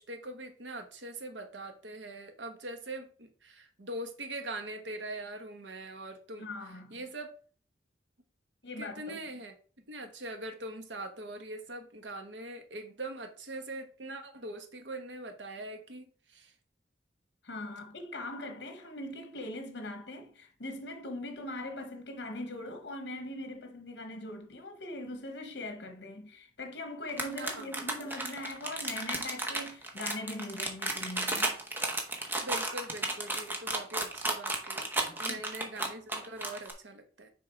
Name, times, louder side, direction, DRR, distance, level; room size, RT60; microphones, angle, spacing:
voice 1, 0.0-6.4 6.9-7.3 8.8-9.5 9.9-16.5 27.4-27.7 32.4-34.9 35.2-37.3, right 1 dB, 80° right, 1.1 m, -42 dB
voice 2, 6.4-7.0 8.6-9.2 17.4-31.5 35.2-35.4, left 1 dB, 65° left, 0.9 m, -41 dB
sound 1, 27.1-36.7, right 2 dB, 10° right, 0.9 m, -33 dB
6.5 x 3.6 x 4.5 m
head